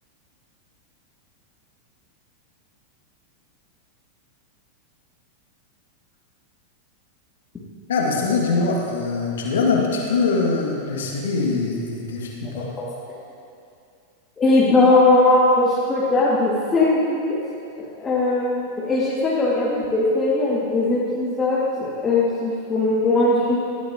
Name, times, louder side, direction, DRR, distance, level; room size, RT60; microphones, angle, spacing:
voice 1, 7.9-12.7, left 4 dB, 60° left, -2 dB, 2.3 m, -23 dB
voice 2, 14.4-17.4 18.0-23.6, left 2 dB, 15° left, -9 dB, 2.3 m, -19 dB
19.5 x 13.5 x 3.0 m, 2.5 s
figure-of-eight pair, 90°, 0 cm